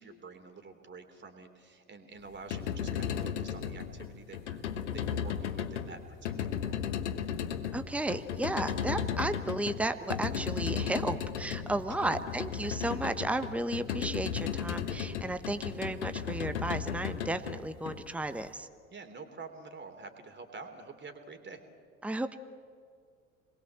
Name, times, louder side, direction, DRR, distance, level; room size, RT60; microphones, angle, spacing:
voice 1, 0.0-6.9 11.9-12.2 12.6-12.7 18.9-21.6, right 4 dB, 30° right, 6 dB, 3.5 m, -48 dB
sound 1, 2.3-18.5, left 8 dB, 70° left, 1.4 m, -35 dB
voice 2, 7.7-18.7 22.0-22.4, right 2 dB, 5° right, 11 dB, 1.2 m, -34 dB
29.5 x 21.5 x 7.6 m, 2.1 s
figure-of-eight pair, 60°, 36 cm